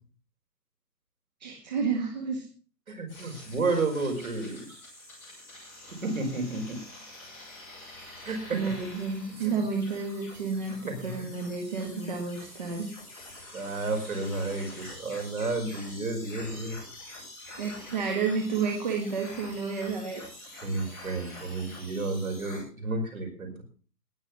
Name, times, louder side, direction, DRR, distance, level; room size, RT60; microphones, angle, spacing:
voice 1, 1.4-2.5 3.2-3.4 8.5-12.9 17.6-20.2, right 5 dB, 25° right, 1 dB, 1.7 m, -31 dB
voice 2, 2.9-4.8 6.0-6.8 8.2-8.6 9.4-9.6 10.9-11.3 13.5-16.8 20.6-23.6, right 3 dB, 55° right, 4 dB, 5.4 m, -31 dB
sound 1, 3.1-22.6, left 2 dB, 5° left, 4.6 m, -46 dB
19.5 x 6.5 x 6.2 m, 0.41 s
hypercardioid pair, 170°, 49 cm